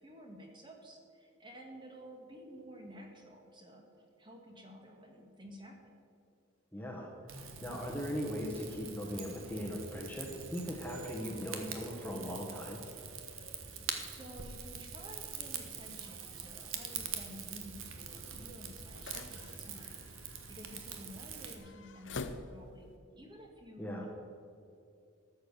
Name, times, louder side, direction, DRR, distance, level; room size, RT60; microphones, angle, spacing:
voice 1, 0.0-3.9 4.2-5.9 13.7-24.1, equal, 25° right, 2 dB, 1.6 m, -52 dB
voice 2, 6.7-12.8 23.8-24.1, equal, 10° left, 0 dB, 1.2 m, -39 dB
Rain / Fire, 7.3-21.6, right 6 dB, 85° right, 1.3 m, -44 dB
sound 1, 15.3-23.0, left 3 dB, 60° left, 0.6 m, -50 dB
13.5 x 7.2 x 6.5 m, 2.5 s
head